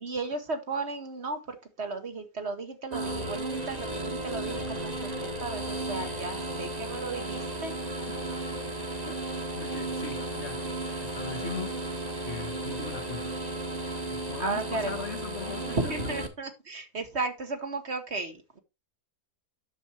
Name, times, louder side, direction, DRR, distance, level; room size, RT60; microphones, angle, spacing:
voice 1, 0.0-7.7 14.4-14.9 15.7-18.6, right 3 dB, 45° right, 1.5 m, -34 dB
sound 1, 2.9-16.3, right 2 dB, 25° right, 1.5 m, -34 dB
voice 2, 8.1-8.4 8.8-13.4 13.9-16.2, left 6 dB, 50° left, 1.2 m, -41 dB
10.5 x 7.0 x 2.8 m
omnidirectional pair, 1.6 m